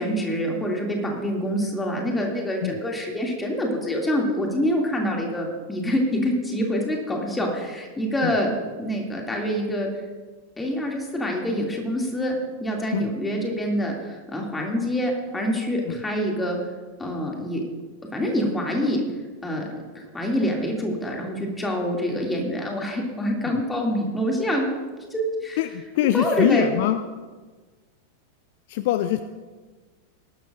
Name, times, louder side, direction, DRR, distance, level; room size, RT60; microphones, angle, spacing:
voice 1, 0.0-8.5 8.8-9.9 10.6-16.6 17.0-17.6 18.1-19.0 19.4-19.7 19.9-24.7 25.0-25.6 26.1-26.7, equal, 10° left, 0 dB, 2.4 m, -26 dB
voice 2, 25.6-27.0 28.7-29.2, left 13 dB, 50° left, 11 dB, 0.5 m, -23 dB
19.5 x 12.0 x 2.5 m, 1.4 s
figure-of-eight pair, 90°, 0 cm